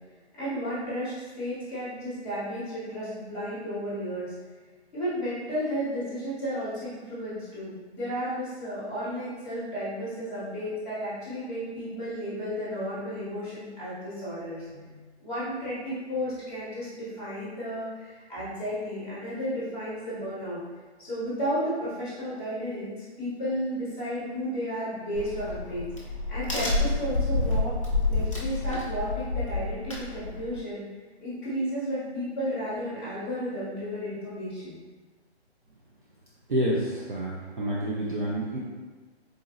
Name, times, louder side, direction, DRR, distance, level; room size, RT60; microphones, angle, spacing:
voice 1, 0.4-4.3 4.9-20.6 21.0-25.8 26.3-27.7 28.0-30.8 31.2-34.8, equal, ahead, -15 dB, 1.1 m, -33 dB
Crack, 25.1-30.6, left 2 dB, 30° left, 0.5 m, -28 dB
voice 2, 36.5-38.6, right 1 dB, 50° right, -6 dB, 0.5 m, -28 dB
4.1 x 2.5 x 2.4 m, 1.4 s
hypercardioid pair, 175°, 33 cm